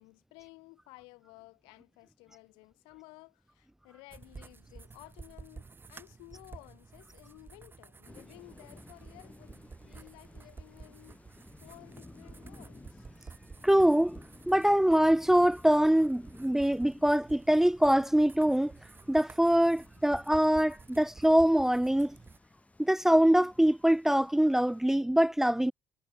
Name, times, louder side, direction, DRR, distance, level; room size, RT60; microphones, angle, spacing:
voice 1, 0.0-11.2 11.6-13.1 16.9-17.0 20.7-20.8, left 26 dB, 80° left, 7.9 m, -55 dB
sound 1, 4.1-22.4, right 4 dB, 25° right, 3.5 m, -51 dB
Thunder / Rain, 8.1-24.8, left 2 dB, 15° left, 7.3 m, -56 dB
voice 2, 13.6-14.2 14.5-18.7 19.1-22.2 22.8-25.7, right 1 dB, 5° right, 0.5 m, -24 dB
hypercardioid pair, 70°, 8 cm